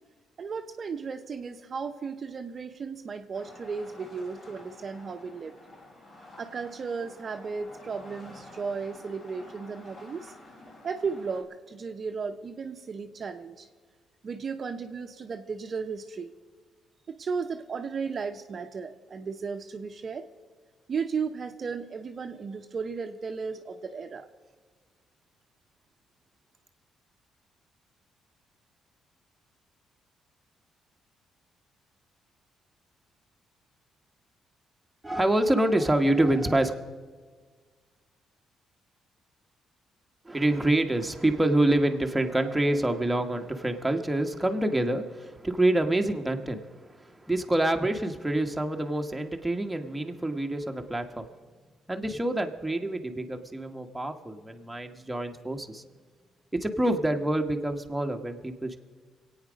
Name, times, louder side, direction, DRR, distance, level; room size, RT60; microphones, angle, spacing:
voice 1, 0.4-5.6 6.4-10.3 10.8-13.7 14.2-16.3 17.1-20.3 20.9-24.3, right 5 dB, 45° right, 0.8 m, -35 dB
sound 1, 3.3-11.4, left 1 dB, 50° left, 4.4 m, -50 dB
voice 2, 35.0-36.7 40.2-51.2 51.9-55.8 56.5-58.8, right 1 dB, 10° right, 1.3 m, -27 dB
24.0 x 8.9 x 5.1 m
cardioid pair, 90°, 0 cm